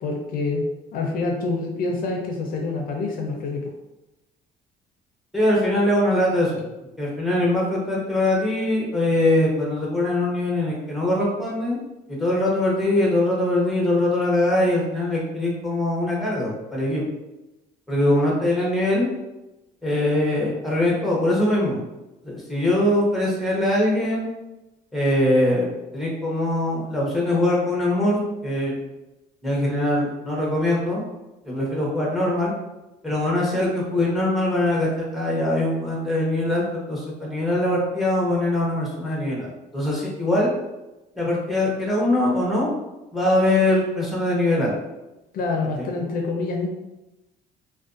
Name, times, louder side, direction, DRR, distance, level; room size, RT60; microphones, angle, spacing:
voice 1, 0.0-0.7 0.9-3.7 45.3-46.7, left 3 dB, 55° left, 1 dB, 0.5 m, -26 dB
voice 2, 5.3-6.7 7.0-11.8 12.1-17.0 17.9-19.1 19.8-21.8 22.2-24.3 24.9-25.7 25.9-28.8 29.4-31.0 31.4-32.5 33.0-40.5 41.2-42.7 43.1-44.7 45.8-45.9, left 1 dB, ahead, -3 dB, 0.8 m, -22 dB
2.4 x 2.2 x 2.4 m, 0.98 s
cardioid pair, 110°, 17 cm